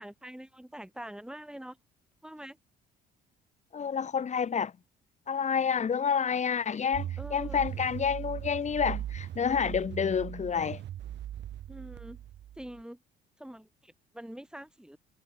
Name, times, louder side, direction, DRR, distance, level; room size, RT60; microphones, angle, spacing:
voice 1, 0.0-1.8 2.2-2.6 7.2-7.6 11.7-12.2 12.6-13.0 13.4-15.0, right 1 dB, 5° right, 7.0 m, -45 dB
voice 2, 3.7-4.7 5.3-10.8, left 7 dB, 35° left, 1.7 m, -29 dB
sound 1, 6.9-12.8, right 11 dB, 65° right, 5.5 m, -39 dB
cardioid pair, 90°, 20 cm